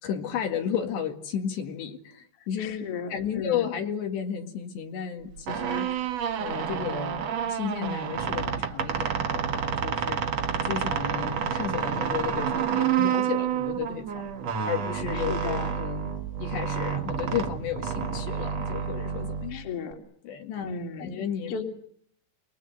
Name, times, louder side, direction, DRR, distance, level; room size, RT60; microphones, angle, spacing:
voice 1, 0.0-5.9 6.4-10.3 10.6-14.3 14.7-16.1 16.4-19.6 20.2-21.6, left 8 dB, 70° left, 4 dB, 4.1 m, -33 dB
voice 2, 2.6-3.7 15.1-15.8 19.5-20.0 20.6-21.2 21.5-21.6, left 5 dB, 35° left, 4 dB, 3.3 m, -35 dB
sound 1, 5.3-19.9, right 8 dB, 60° right, 1.7 m, -29 dB
29.0 x 23.0 x 7.9 m, 0.63 s
omnidirectional pair, 5.3 m